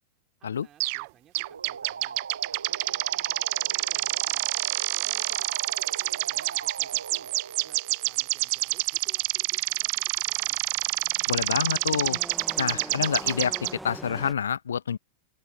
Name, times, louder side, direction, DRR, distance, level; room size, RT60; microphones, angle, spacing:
voice 1, 0.4-2.2 2.5-4.5 5.0-10.7, right 11 dB, 30° right, 5.6 m, -57 dB
sound 1, 0.8-1.1 1.3-13.7, right 30 dB, 45° right, 0.3 m, -28 dB
sound 2, 1.4-8.7, right 6 dB, 70° right, 1.5 m, -41 dB
sound 3, 10.3-14.3, right 1 dB, 5° right, 1.5 m, -43 dB
voice 2, 11.3-12.2 12.6-13.5 13.8-15.0, left 7 dB, 70° left, 0.4 m, -27 dB
open air
figure-of-eight pair, 90°, 0 cm